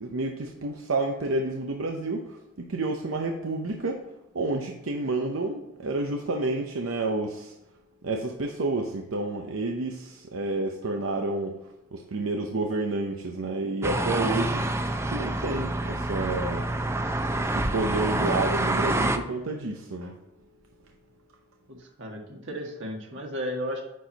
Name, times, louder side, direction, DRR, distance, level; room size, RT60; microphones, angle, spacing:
voice 1, 0.0-4.1 4.3-7.5 8.0-14.7 15.0-16.7 17.4-20.2, right 2 dB, 90° right, 3 dB, 0.7 m, -30 dB
sound 1, 13.8-19.2, right 2 dB, 15° right, 0.4 m, -27 dB
voice 2, 21.7-23.9, equal, 65° right, 1 dB, 1.6 m, -34 dB
9.2 x 4.5 x 4.0 m, 0.91 s
head